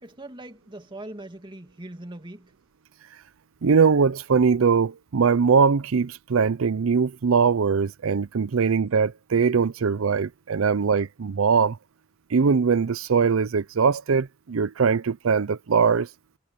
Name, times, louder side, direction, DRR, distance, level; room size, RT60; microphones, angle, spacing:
voice 1, 0.0-2.5, right 1 dB, 25° right, 2.3 m, -41 dB
voice 2, 3.6-11.8 12.3-16.1, right 5 dB, 90° right, 0.5 m, -21 dB
head